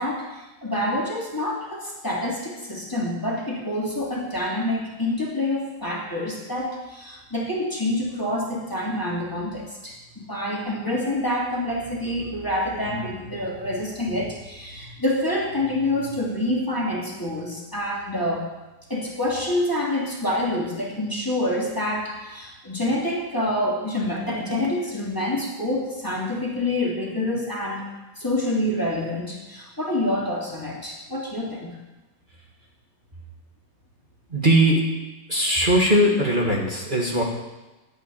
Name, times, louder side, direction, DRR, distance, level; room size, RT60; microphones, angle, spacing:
voice 1, 0.0-18.5 18.9-27.8 28.2-31.7, left 1 dB, 10° left, -3 dB, 2.6 m, -27 dB
voice 2, 34.3-34.8 35.3-37.2, right 1 dB, 30° right, -2 dB, 1.8 m, -19 dB
11.0 x 8.5 x 8.8 m, 1.1 s
omnidirectional pair, 1.9 m